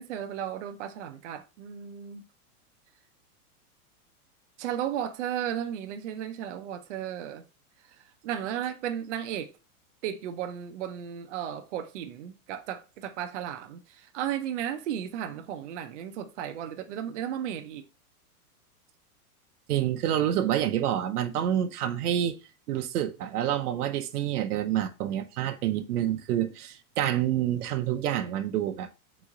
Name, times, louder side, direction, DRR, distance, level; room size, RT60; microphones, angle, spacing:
voice 1, 0.0-2.3 4.6-7.4 8.0-9.5 10.0-17.9, right 10 dB, 55° right, 0.5 m, -34 dB
voice 2, 19.7-22.4 22.7-28.9, right 11 dB, 90° right, 0.7 m, -28 dB
3.7 x 3.1 x 3.5 m
supercardioid pair, 175°, 45 cm